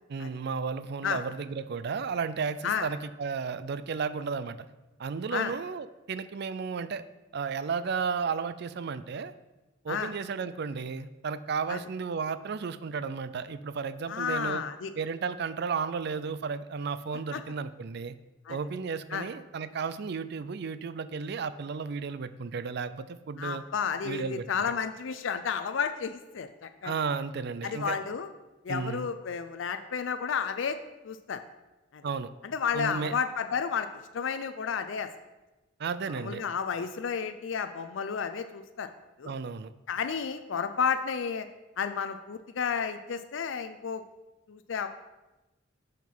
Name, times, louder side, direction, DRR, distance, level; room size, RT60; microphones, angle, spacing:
voice 1, 0.1-4.7 5.0-7.0 7.3-9.3 9.8-14.6 15.0-18.2 18.5-23.6 24.0-24.4 26.8-28.0 28.7-29.1 32.0-32.3 32.7-33.1 35.8-36.4 39.2-39.7, right 5 dB, 55° right, 14 dB, 0.4 m, -33 dB
voice 2, 14.1-14.9 17.3-17.4 18.5-18.6 19.1-19.3 23.4-26.9 27.6-28.3 28.6-30.8 31.0-31.4 31.9-32.0 32.5-33.9 34.1-35.1 36.1-38.9 39.2-39.3 39.9-41.5 41.8-44.0 44.5-44.9, left 6 dB, 70° left, 9 dB, 0.4 m, -32 dB
7.5 x 5.9 x 5.5 m, 1.1 s
head